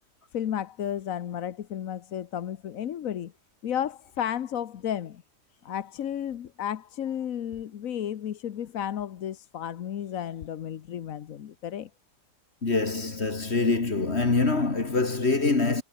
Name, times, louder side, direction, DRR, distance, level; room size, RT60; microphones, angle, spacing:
voice 1, 0.3-3.3 3.6-5.2 5.6-11.9, left 10 dB, 85° left, 1.4 m, -33 dB
voice 2, 12.6-15.8, left 3 dB, 50° left, 2.7 m, -24 dB
omnidirectional pair, 1.4 m